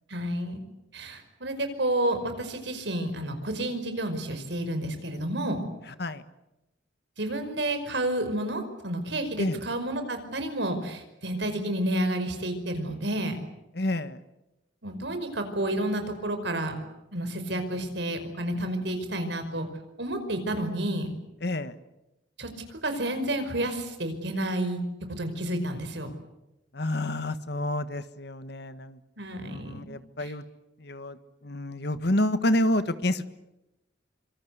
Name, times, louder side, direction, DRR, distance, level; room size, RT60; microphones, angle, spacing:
voice 1, 0.1-0.6 0.9-5.6 7.2-13.4 14.8-16.7 17.1-19.7 20.0-21.1 22.4-22.5 22.8-24.8 25.2-26.1 29.2-29.8 30.2-30.3, right 1 dB, 65° right, 8 dB, 5.3 m, -30 dB
voice 2, 13.7-14.2 21.4-21.7 26.7-29.0 29.4-30.4 30.8-31.2 31.4-33.2, left 1 dB, 60° left, 12 dB, 1.6 m, -28 dB
26.0 x 26.0 x 8.2 m, 0.95 s
head